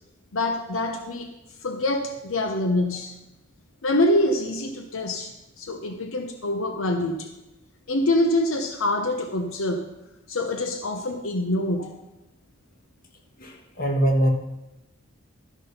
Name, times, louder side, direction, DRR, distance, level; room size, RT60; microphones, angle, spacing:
voice 1, 0.3-1.3 1.6-3.1 3.8-7.3 7.9-9.8 10.3-11.9, left 1 dB, 80° left, 5 dB, 0.9 m, -25 dB
voice 2, 13.4-14.3, right 1 dB, 45° left, 1 dB, 1.5 m, -22 dB
12.0 x 6.0 x 5.5 m, 0.97 s
head